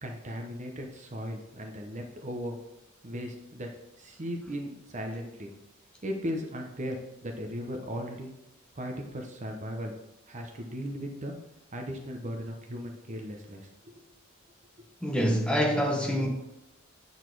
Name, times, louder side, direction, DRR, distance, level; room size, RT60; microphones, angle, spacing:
voice 1, 0.0-2.6 3.0-3.7 4.0-5.5 6.0-8.3 8.7-9.9 10.3-11.3 11.7-14.1, equal, 35° right, 0.9 m, -37 dB
voice 2, 15.0-16.3, equal, 5° left, 1.0 m, -26 dB
8.9 x 4.1 x 4.7 m
head